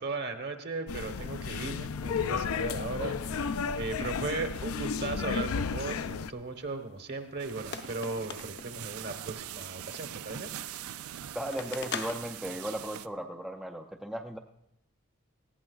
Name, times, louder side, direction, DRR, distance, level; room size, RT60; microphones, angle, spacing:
voice 1, 0.0-10.5, right 3 dB, 50° right, 6 dB, 1.1 m, -37 dB
sound 1, 0.9-6.3, left 5 dB, 80° left, 0.4 m, -33 dB
sound 2, 5.7-12.9, left 5 dB, 50° left, 0.7 m, -45 dB
sound 3, 7.4-13.1, right 11 dB, 80° right, 0.4 m, -42 dB
voice 2, 11.3-14.4, right 1 dB, 5° right, 3 dB, 0.4 m, -36 dB
19.0 x 15.0 x 2.3 m, 0.82 s
head